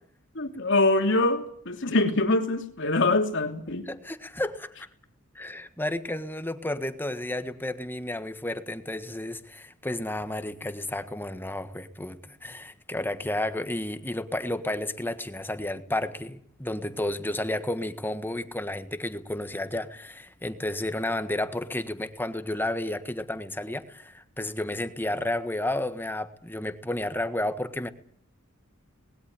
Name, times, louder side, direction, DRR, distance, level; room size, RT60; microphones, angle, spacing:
voice 1, 0.3-3.9, left 2 dB, 60° left, 5 dB, 2.9 m, -24 dB
voice 2, 3.9-4.9 5.3-27.9, left 1 dB, 10° left, 10 dB, 1.5 m, -32 dB
20.0 x 18.0 x 9.8 m, 0.64 s
head